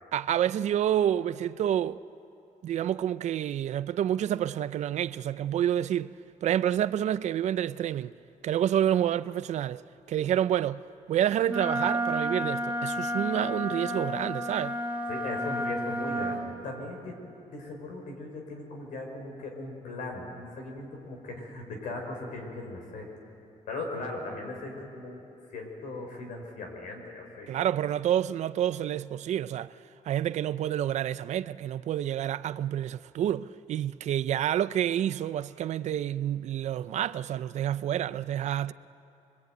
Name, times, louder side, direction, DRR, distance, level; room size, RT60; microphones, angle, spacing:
voice 1, 0.1-2.0 2.6-6.1 6.4-8.1 8.4-9.8 10.1-10.8 11.1-14.8 27.5-29.7 30.1-38.7, right 10 dB, 60° right, 0.5 m, -28 dB
Wind instrument woodwind instrument, 11.5-16.4, equal, 15° right, 2.3 m, -31 dB
voice 2, 15.1-17.2 17.5-23.1 23.7-25.2 25.5-27.5, left 2 dB, 80° left, 5.7 m, -38 dB
24.5 x 24.0 x 9.3 m
wide cardioid pair, 175°, 13 cm